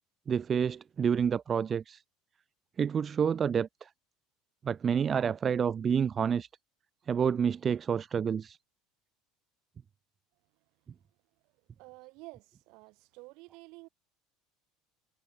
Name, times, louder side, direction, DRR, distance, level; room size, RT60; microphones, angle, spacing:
voice 1, 0.3-2.0 2.8-3.9 4.6-6.5 7.1-8.6, right 7 dB, 35° right, 0.6 m, -28 dB
voice 2, 11.8-13.9, right 26 dB, 65° right, 5.5 m, -51 dB
hypercardioid pair, 75°, 0 cm